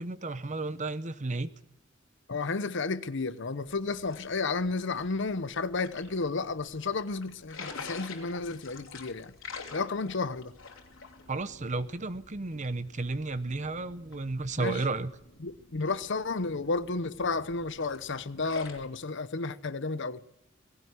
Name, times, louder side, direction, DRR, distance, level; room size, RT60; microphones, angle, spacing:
voice 1, 0.0-1.5 11.3-15.1, right 3 dB, 40° right, 0.9 m, -33 dB
voice 2, 2.3-9.3 9.7-10.5 14.6-14.8 15.4-20.2, left 3 dB, 65° left, 0.9 m, -32 dB
sound 1, 3.7-18.9, left 4 dB, 85° left, 3.1 m, -48 dB
18.5 x 16.5 x 9.6 m
head